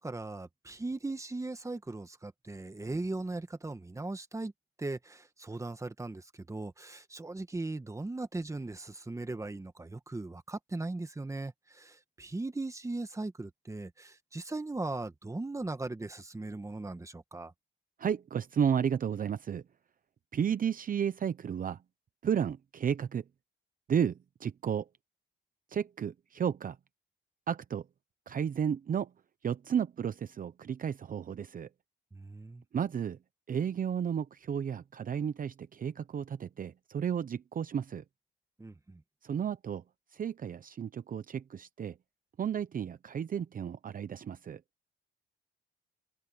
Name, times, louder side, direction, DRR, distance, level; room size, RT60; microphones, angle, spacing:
voice 1, 0.0-4.5 4.8-17.5 32.1-32.6 38.6-39.0, right 2 dB, 15° right, 1.7 m, -38 dB
voice 2, 18.0-19.6 20.3-21.8 22.2-23.2 23.9-24.9 25.7-26.8 27.5-27.9 28.3-29.1 29.4-31.7 32.7-33.2 33.5-38.0 39.2-39.8 40.1-42.0 42.4-44.6, right 8 dB, 45° right, 0.8 m, -32 dB
open air
cardioid pair, 90°, 20 cm